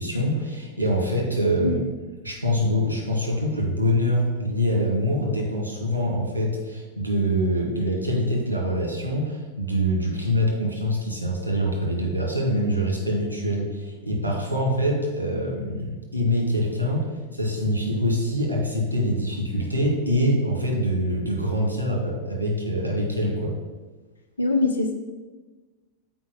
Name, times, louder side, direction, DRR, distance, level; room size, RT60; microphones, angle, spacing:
voice 1, 0.0-1.8 2.2-23.5, equal, 80° right, -2 dB, 2.0 m, -24 dB
voice 2, 24.4-24.9, left 3 dB, 75° left, 4 dB, 0.9 m, -22 dB
7.1 x 4.7 x 5.3 m, 1.3 s
figure-of-eight pair, 90°, 0 cm